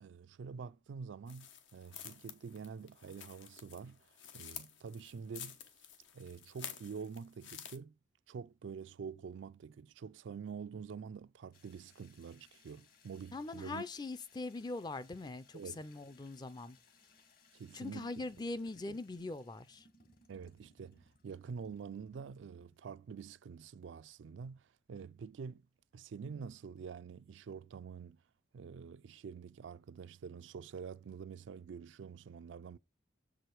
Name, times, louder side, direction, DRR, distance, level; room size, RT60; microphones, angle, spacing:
voice 1, 0.0-4.1 4.3-5.6 6.1-8.0 8.3-13.9 15.5-15.8 17.5-18.1 18.9-19.0 20.3-25.7 25.9-28.2 28.5-32.8, right 6 dB, 80° right, 0.4 m, -47 dB
sound 1, 1.3-7.8, left 9 dB, 85° left, 1.0 m, -50 dB
sound 2, 11.5-22.9, left 4 dB, 50° left, 1.2 m, -67 dB
voice 2, 13.3-16.8 17.7-19.9, left 2 dB, 20° left, 0.4 m, -42 dB
6.9 x 4.9 x 4.5 m
head